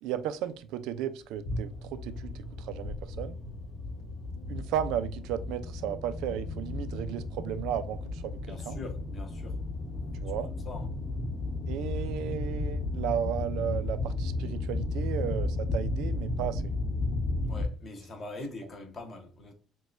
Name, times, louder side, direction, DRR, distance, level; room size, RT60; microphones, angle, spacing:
voice 1, 0.0-2.3 2.6-3.4 4.5-8.8 10.2-10.5 11.7-16.7, right 10 dB, 85° right, 0.4 m, -34 dB
sound 1, 1.5-17.7, left 2 dB, 60° left, 0.9 m, -34 dB
voice 2, 8.5-9.6 10.6-10.9 17.5-19.5, left 2 dB, 30° left, 0.8 m, -42 dB
6.0 x 2.2 x 2.5 m
cardioid pair, 155°, 0 cm